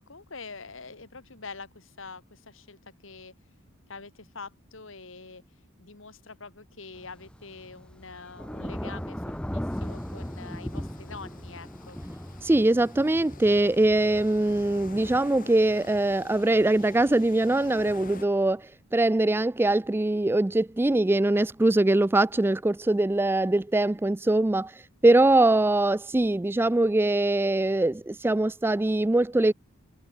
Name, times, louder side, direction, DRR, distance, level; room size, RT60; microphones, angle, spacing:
voice 1, 0.0-3.3 3.9-5.4 5.8-12.0, left 4 dB, 65° left, 2.1 m, -45 dB
Thunder / Rain, 6.9-15.2, equal, 5° left, 0.7 m, -38 dB
sound 1, 9.7-18.3, left 3 dB, 40° left, 4.8 m, -48 dB
voice 2, 12.4-24.7 25.0-29.5, right 2 dB, 10° right, 0.4 m, -22 dB
head